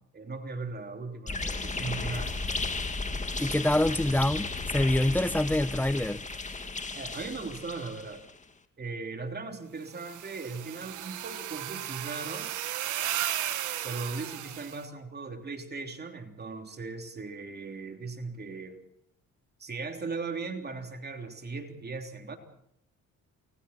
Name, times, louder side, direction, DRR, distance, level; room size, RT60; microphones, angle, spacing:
voice 1, 0.1-2.4 6.9-8.2 8.8-12.5 13.8-18.8 19.6-22.4, right 4 dB, 35° right, 3.3 m, -38 dB
sound 1, 1.3-8.3, left 3 dB, 25° left, 2.3 m, -34 dB
voice 2, 3.4-6.2, left 1 dB, 5° left, 0.9 m, -26 dB
sound 2, 9.9-14.8, right 12 dB, 85° right, 1.8 m, -35 dB
29.0 x 21.5 x 4.4 m
cardioid pair, 90°, 30 cm